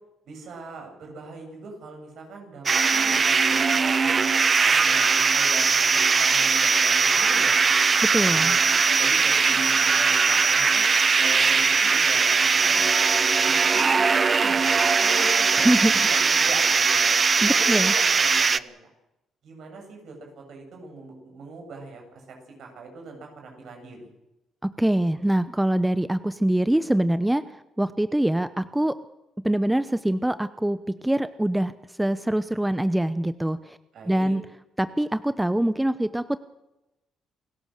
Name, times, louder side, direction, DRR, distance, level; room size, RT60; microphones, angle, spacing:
voice 1, 0.3-4.3 4.6-7.8 8.2-10.9 11.2-14.1 14.4-18.8 19.4-24.1 33.9-34.3, right 3 dB, 70° right, 2 dB, 7.8 m, -41 dB
sound 1, 2.7-18.6, right 5 dB, 40° right, 0.7 m, -20 dB
voice 2, 8.1-8.6 15.6-15.9 17.4-17.9 24.6-27.4 27.8-29.0 29.4-31.7 32.0-33.8 34.1-34.4 34.8-36.4, right 1 dB, 5° right, 13 dB, 0.8 m, -24 dB
29.0 x 16.5 x 6.7 m, 0.94 s
cardioid pair, 90°, 0 cm